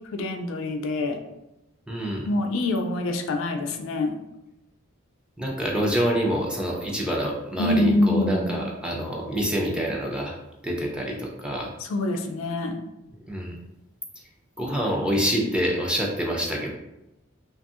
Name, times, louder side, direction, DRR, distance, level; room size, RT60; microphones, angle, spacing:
voice 1, 0.1-1.2 2.3-4.2 7.6-8.6 11.8-12.8, left 2 dB, 65° left, 5 dB, 0.3 m, -25 dB
voice 2, 1.9-2.3 5.4-10.4 10.6-11.7 13.2-13.6 14.6-16.7, equal, 5° right, -2 dB, 0.4 m, -26 dB
2.6 x 2.6 x 2.4 m, 0.92 s
head